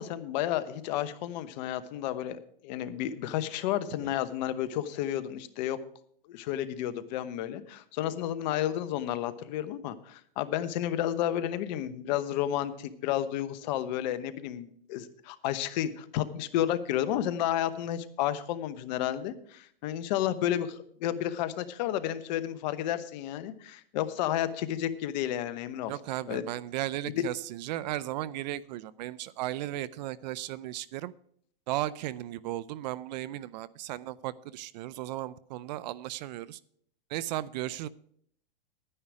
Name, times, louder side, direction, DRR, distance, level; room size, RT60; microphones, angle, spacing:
voice 1, 0.0-5.8 6.3-25.9 26.3-26.4, left 12 dB, 50° left, 12 dB, 1.0 m, -31 dB
voice 2, 25.9-31.1 31.7-36.6 37.1-37.9, right 15 dB, 50° right, 20 dB, 0.5 m, -35 dB
11.0 x 9.9 x 4.8 m, 0.63 s
hypercardioid pair, 130°, 29 cm